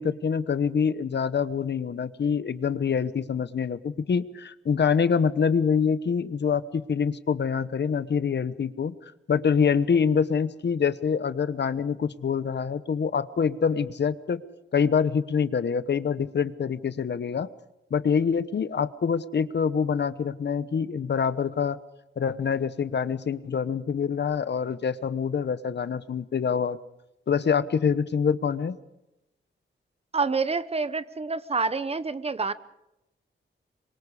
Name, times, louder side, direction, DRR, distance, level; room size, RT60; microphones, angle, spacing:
voice 1, 0.0-8.9 9.3-14.4 14.7-17.5 17.9-21.8 22.2-26.8 27.3-28.8, left 6 dB, 55° left, 14 dB, 1.0 m, -25 dB
voice 2, 30.1-32.5, right 4 dB, 30° right, 14 dB, 0.9 m, -27 dB
26.5 x 24.0 x 4.9 m, 0.91 s
wide cardioid pair, 130°, 21 cm